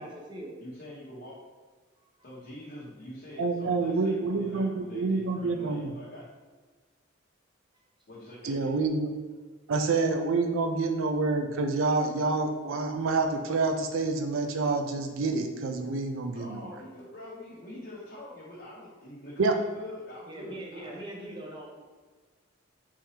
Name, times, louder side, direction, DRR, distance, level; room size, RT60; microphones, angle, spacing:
voice 1, 0.0-0.6 2.0-2.1 7.7-7.8 20.3-21.8, right 1 dB, 25° right, 0 dB, 0.6 m, -42 dB
voice 2, 0.6-1.4 2.2-6.3 8.1-8.7 16.3-21.0, left 1 dB, 55° left, -9 dB, 0.9 m, -44 dB
voice 3, 3.4-5.9 8.4-9.1 9.7-16.7 19.4-19.5, right 3 dB, 90° right, 4 dB, 0.4 m, -27 dB
3.7 x 3.1 x 2.8 m, 1.4 s
head